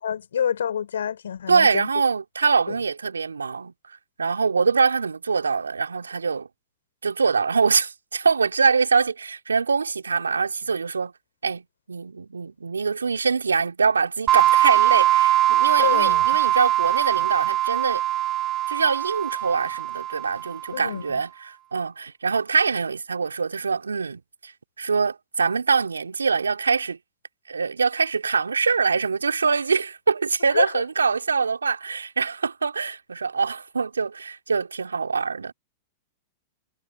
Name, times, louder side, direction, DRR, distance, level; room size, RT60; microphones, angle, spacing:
voice 1, 0.0-1.9 2.7-2.8 15.8-16.3 20.7-21.2 30.5-30.7, left 8 dB, 75° left, 6.1 m, -27 dB
voice 2, 1.5-3.7 4.2-6.5 7.0-11.1 11.4-18.0 18.7-24.5 24.8-27.0 27.5-35.5, right 5 dB, 85° right, 4.1 m, -24 dB
sound 1, 14.3-20.8, right 13 dB, 35° right, 0.7 m, -21 dB
hypercardioid pair, 100°, 0 cm